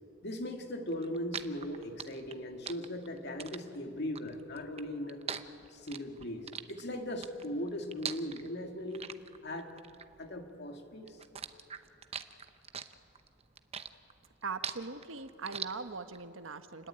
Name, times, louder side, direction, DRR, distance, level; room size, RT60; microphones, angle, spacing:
voice 1, 0.2-5.2 5.7-9.1 9.4-9.7 10.2-11.2, left 1 dB, 60° left, 4 dB, 2.4 m, -39 dB
sound 1, 0.9-10.7 11.1-16.2, right 7 dB, 30° right, 0.8 m, -42 dB
voice 2, 14.4-16.9, right 4 dB, 85° right, 9 dB, 1.2 m, -40 dB
28.0 x 20.5 x 8.9 m, 2.9 s
head